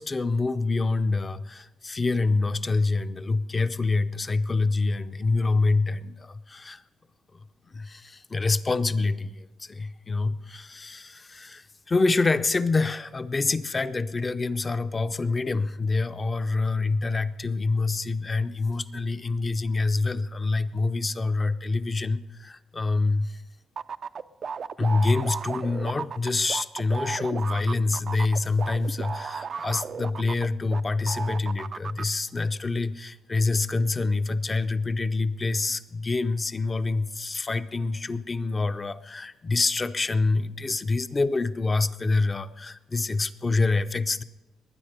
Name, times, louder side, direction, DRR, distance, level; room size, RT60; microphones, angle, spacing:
voice 1, 0.0-6.8 7.7-23.3 24.8-44.2, left 3 dB, 30° left, 12 dB, 0.6 m, -26 dB
sound 1, 23.8-30.8 31.1-32.0, right 6 dB, 50° right, 0.4 m, -34 dB
21.0 x 9.5 x 5.1 m, 1.1 s
cardioid pair, 90°, 0 cm